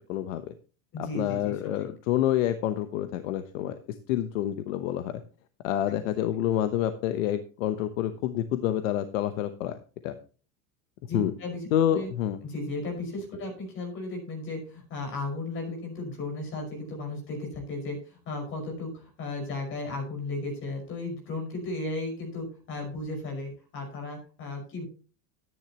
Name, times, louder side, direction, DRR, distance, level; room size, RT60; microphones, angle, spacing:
voice 1, 0.1-0.5 1.1-3.8 4.1-5.1 5.6-9.8 10.0-10.1 11.1-11.3 11.7-12.4, left 11 dB, 60° left, 9 dB, 1.0 m, -28 dB
voice 2, 0.9-1.6 5.9-6.0 11.1-12.1 12.4-24.8, left 2 dB, 25° left, 2 dB, 5.5 m, -35 dB
13.5 x 10.0 x 3.0 m, 0.36 s
supercardioid pair, 175°, 44 cm